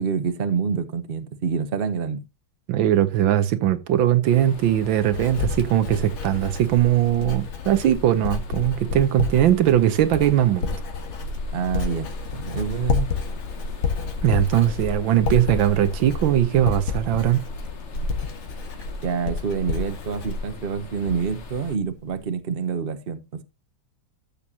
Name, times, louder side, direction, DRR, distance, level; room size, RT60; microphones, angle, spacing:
voice 1, 0.0-2.2 11.5-12.1 12.3-13.1 19.0-23.4, right 6 dB, 45° right, 0.7 m, -27 dB
voice 2, 2.7-10.8 14.2-17.4, right 12 dB, 70° right, 1.5 m, -20 dB
sound 1, 4.2-21.8, left 4 dB, 40° left, 1.2 m, -42 dB
Writing, 4.4-21.4 21.7-22.2, left 4 dB, 85° left, 2.5 m, -30 dB
14.0 x 6.8 x 2.8 m
omnidirectional pair, 2.3 m